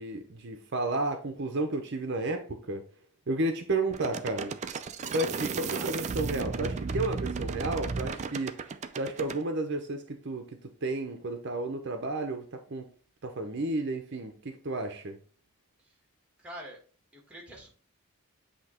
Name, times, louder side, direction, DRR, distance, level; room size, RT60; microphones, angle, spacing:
voice 1, 0.0-2.8 3.3-4.6 5.1-12.9 13.2-15.2, right 2 dB, 50° right, 5 dB, 0.7 m, -32 dB
sound 1, 3.9-9.4, right 4 dB, 30° right, 0.4 m, -34 dB
voice 2, 16.4-16.8 17.1-17.7, right 1 dB, 5° right, 0 dB, 1.4 m, -45 dB
8.1 x 2.9 x 4.2 m, 0.40 s
head